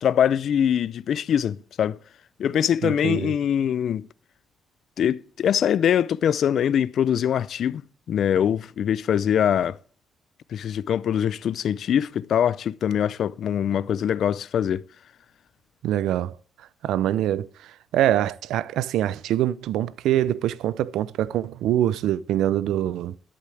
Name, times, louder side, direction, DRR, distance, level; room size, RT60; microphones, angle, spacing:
voice 1, 0.0-2.0 2.4-4.1 5.0-7.8 8.1-9.8 10.5-14.8, left 9 dB, 65° left, 0.5 m, -23 dB
voice 2, 2.8-3.3 15.8-16.3 16.8-23.1, right 12 dB, 85° right, 0.5 m, -24 dB
13.0 x 11.5 x 3.4 m
cardioid pair, 90°, 0 cm